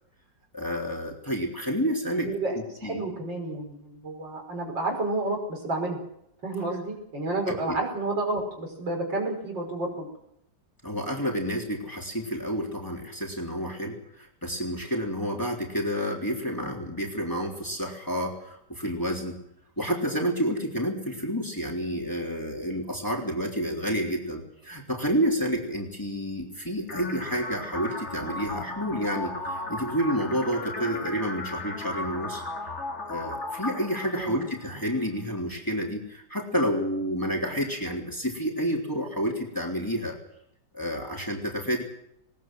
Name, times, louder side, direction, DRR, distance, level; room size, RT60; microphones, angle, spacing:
voice 1, 0.5-3.0 7.4-7.8 10.8-19.4 19.8-32.4 33.1-40.2 40.7-41.8, equal, 10° left, 0 dB, 3.5 m, -29 dB
voice 2, 2.2-2.5 2.8-6.0 6.4-10.1 34.2-34.5, right 2 dB, 80° right, 2 dB, 6.1 m, -30 dB
sound 1, 26.9-34.9, left 2 dB, 35° left, 2.8 m, -36 dB
20.0 x 19.0 x 7.7 m, 0.77 s
omnidirectional pair, 2.0 m